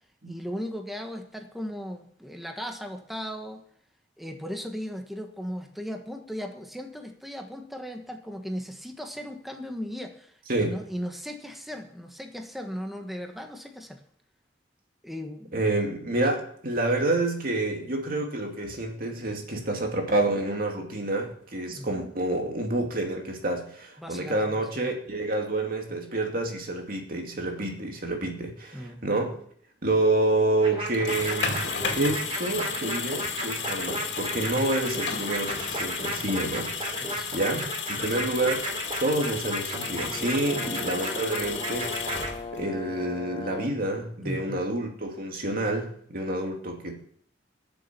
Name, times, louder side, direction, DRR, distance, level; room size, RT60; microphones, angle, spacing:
voice 1, 0.3-3.6 4.2-14.0 15.0-15.6 19.6-19.7 21.7-22.0 24.0-24.5 24.8-24.9 28.7-29.0 37.0-37.7 38.0-38.2 40.5-40.8 44.2-44.6, equal, ahead, 4 dB, 1.3 m, -37 dB
voice 2, 15.5-29.4 29.8-31.6 32.0-38.7 39.0-42.3 42.5-47.0, right 2 dB, 55° right, 2 dB, 2.4 m, -28 dB
sound 1, 30.6-42.3, right 1 dB, 35° right, 4.0 m, -34 dB
sound 2, 30.9-42.8, left 6 dB, 90° left, 2.4 m, -33 dB
Brass instrument, 39.7-43.9, left 4 dB, 30° left, 0.6 m, -38 dB
13.5 x 7.1 x 6.8 m, 0.62 s
head